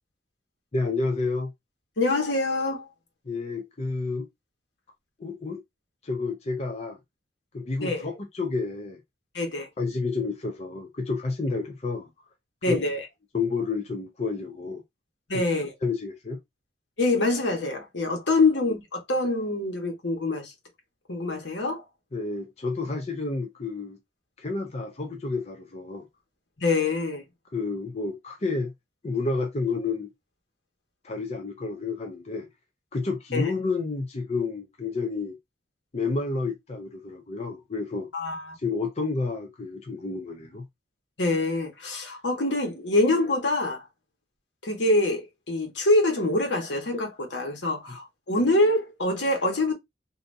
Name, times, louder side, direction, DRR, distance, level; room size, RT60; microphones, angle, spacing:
voice 1, 0.7-1.5 3.3-4.3 5.2-5.6 6.0-7.0 7.5-9.0 9.8-12.1 12.6-12.8 13.3-14.8 15.3-15.4 15.8-16.4 22.1-24.0 24.4-26.1 27.5-28.7 29.0-30.1 31.0-32.5 32.9-35.4 35.9-38.1 38.6-40.6, left 3 dB, 35° left, 0.5 m, -30 dB
voice 2, 2.0-2.8 7.8-8.1 9.3-9.7 12.6-13.0 15.3-15.7 17.0-20.5 21.1-21.8 26.6-27.2 33.3-33.5 38.1-38.5 41.2-43.9 44.6-49.7, left 2 dB, 75° left, 1.3 m, -25 dB
3.4 x 2.7 x 2.6 m
head